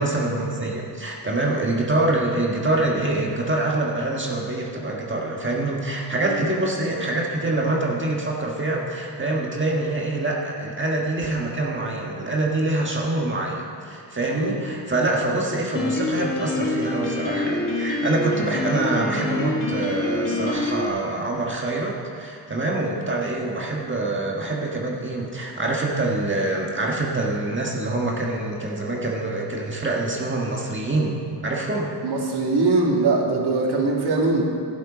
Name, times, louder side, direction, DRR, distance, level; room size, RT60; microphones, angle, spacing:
voice 1, 0.0-31.2 31.4-31.9, right 2 dB, 25° right, -2 dB, 1.6 m, -25 dB
Piano, 15.7-20.9, left 2 dB, 50° left, 1.8 m, -26 dB
voice 2, 32.0-34.4, right 3 dB, 65° right, -1 dB, 2.1 m, -22 dB
12.5 x 10.5 x 5.1 m, 2.4 s
cardioid pair, 100°, 42 cm